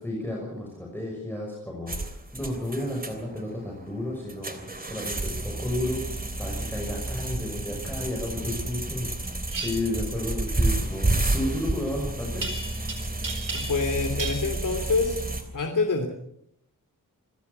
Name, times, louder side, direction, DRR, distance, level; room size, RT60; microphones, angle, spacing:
voice 1, 0.0-6.0 6.4-12.4, left 1 dB, 5° left, -2 dB, 6.1 m, -32 dB
sound 1, 1.9-15.4, right 2 dB, 25° right, 3.2 m, -30 dB
sound 2, 9.5-9.7 12.4-12.9 13.2-13.9 14.2-14.4, right 4 dB, 75° right, 4.6 m, -33 dB
voice 2, 13.5-15.2 15.5-16.1, left 4 dB, 70° left, 3 dB, 3.2 m, -26 dB
27.0 x 16.0 x 7.0 m, 0.75 s
wide cardioid pair, 145°, 33 cm